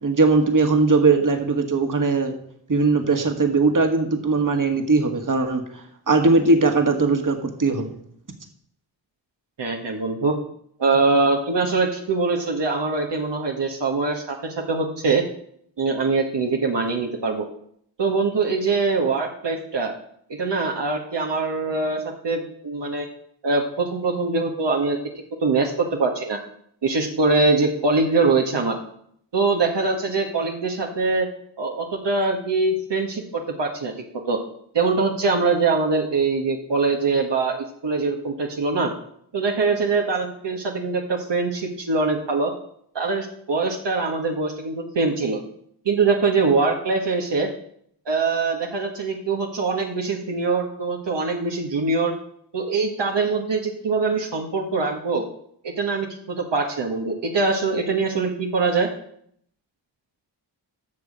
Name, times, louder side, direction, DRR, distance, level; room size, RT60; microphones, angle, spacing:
voice 1, 0.0-2.3 2.7-5.6 6.1-7.9, right 3 dB, 40° right, 5 dB, 2.0 m, -19 dB
voice 2, 9.6-10.3 10.8-15.2 15.8-17.5 18.0-19.9 20.4-23.1 23.4-25.0 25.4-26.4 26.8-28.8 29.3-31.3 31.6-33.9 34.3-34.4 34.7-38.9 39.3-42.5 42.9-45.4 45.8-47.5 48.0-52.1 52.5-55.2 55.6-58.9, right 3 dB, 65° right, 0 dB, 1.7 m, -23 dB
9.6 x 6.4 x 7.4 m, 0.68 s
cardioid pair, 40°, 46 cm